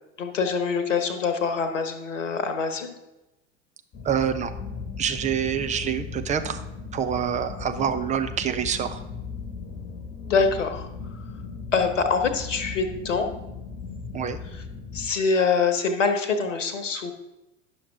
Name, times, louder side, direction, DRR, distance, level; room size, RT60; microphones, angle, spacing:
voice 1, 0.2-2.9 10.3-11.2 11.7-13.3 14.9-17.1, left 5 dB, 70° left, 7 dB, 1.1 m, -25 dB
sound 1, 3.9-15.1, left 5 dB, 35° left, 1.3 m, -37 dB
voice 2, 4.0-4.5 5.0-6.6 6.9-9.0 14.1-14.4, right 8 dB, 20° right, 8 dB, 0.6 m, -26 dB
10.5 x 6.3 x 3.5 m, 0.98 s
figure-of-eight pair, 75°, 38 cm